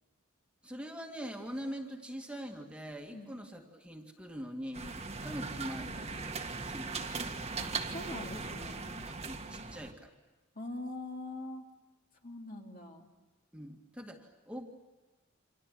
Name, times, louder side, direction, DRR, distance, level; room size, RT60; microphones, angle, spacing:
voice 1, 0.6-6.2 6.6-7.2 9.1-10.1 13.5-14.7, equal, 5° right, 2 dB, 2.1 m, -43 dB
sound 1, 4.7-9.9, right 4 dB, 30° right, 1.7 m, -39 dB
voice 2, 7.6-9.0 10.5-11.7 12.2-13.1, left 2 dB, 45° left, 2 dB, 3.1 m, -43 dB
28.5 x 27.0 x 7.6 m, 1.2 s
head